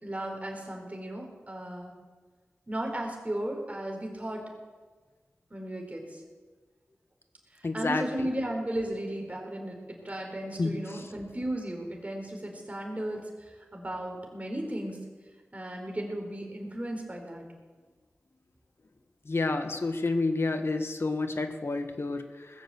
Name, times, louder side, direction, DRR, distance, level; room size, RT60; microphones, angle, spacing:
voice 1, 0.0-1.9 2.7-4.5 5.5-6.2 7.5-15.0 15.5-17.4, right 1 dB, 30° right, 1 dB, 4.4 m, -35 dB
voice 2, 7.6-8.3 10.6-11.0 19.2-22.6, left 3 dB, 60° left, 6 dB, 1.5 m, -30 dB
20.0 x 7.3 x 8.0 m, 1.4 s
cardioid pair, 50°, 5 cm